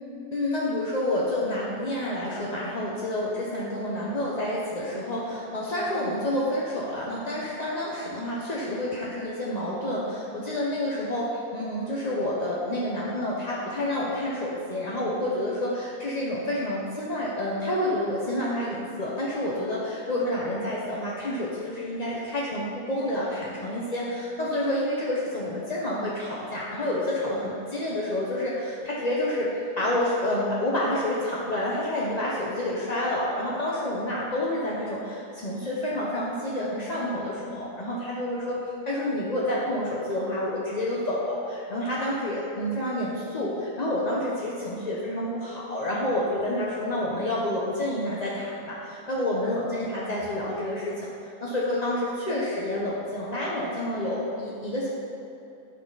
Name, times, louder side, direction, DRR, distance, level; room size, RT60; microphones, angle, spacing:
voice 1, 0.3-29.5 29.8-38.6 38.8-50.9 51.2-54.9, left 1 dB, 40° left, -5 dB, 0.6 m, -29 dB
11.0 x 6.2 x 4.0 m, 2.9 s
omnidirectional pair, 1.9 m